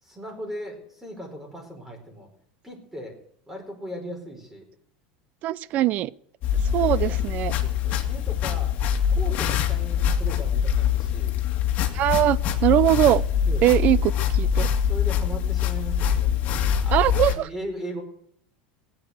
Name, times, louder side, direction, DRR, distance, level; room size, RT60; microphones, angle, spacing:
voice 1, 0.0-2.3 2.6-3.2 3.5-4.6 5.7-5.8 6.8-7.1 7.6-8.8 9.1-11.4 11.9-12.1 13.4-13.7 14.9-16.5 16.8-18.0, equal, 10° right, 2 dB, 4.6 m, -38 dB
voice 2, 5.4-6.1 6.7-7.5 11.9-13.2 13.6-14.7 16.9-17.5, right 14 dB, 45° right, 21 dB, 0.6 m, -21 dB
sound 1, 6.4-17.3, left 9 dB, 45° left, 2.2 m, -24 dB
18.0 x 8.8 x 7.9 m, 0.67 s
supercardioid pair, 130°, 4 cm